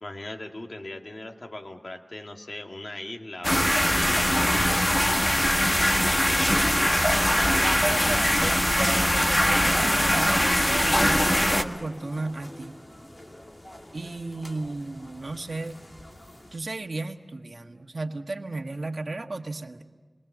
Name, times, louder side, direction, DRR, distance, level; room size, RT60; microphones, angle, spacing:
voice 1, 0.0-4.8, left 1 dB, 55° left, 3 dB, 2.2 m, -39 dB
sound 1, 3.4-11.6, equal, 20° left, 1.5 m, -22 dB
sound 2, 6.0-16.6, left 1 dB, 35° left, 2.7 m, -42 dB
voice 2, 7.8-12.8 13.9-15.8 16.5-19.8, right 2 dB, 75° right, 5 dB, 1.4 m, -34 dB
28.5 x 22.5 x 7.4 m, 1.3 s
wide cardioid pair, 55°, 0 cm